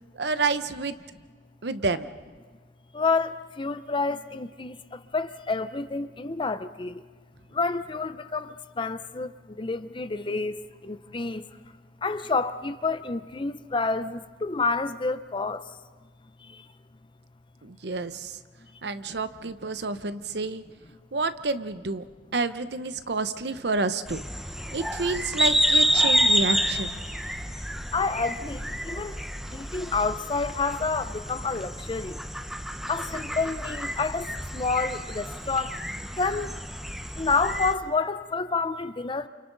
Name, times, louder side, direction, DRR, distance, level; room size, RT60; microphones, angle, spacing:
voice 1, 0.2-0.9 1.6-2.1 17.6-18.3 18.8-20.6 21.1-22.0 22.3-24.2 24.7-27.0, right 3 dB, 65° right, 0.8 m, -29 dB
voice 2, 2.9-7.0 7.5-9.3 9.6-11.4 12.0-15.6 16.5-16.6 27.9-29.2 29.5-32.2 32.9-35.8 36.2-36.5 37.2-39.3, left 4 dB, 30° left, 0.6 m, -29 dB
sound 1, 24.1-37.7, equal, ahead, 1.0 m, -29 dB
29.5 x 28.5 x 4.0 m
head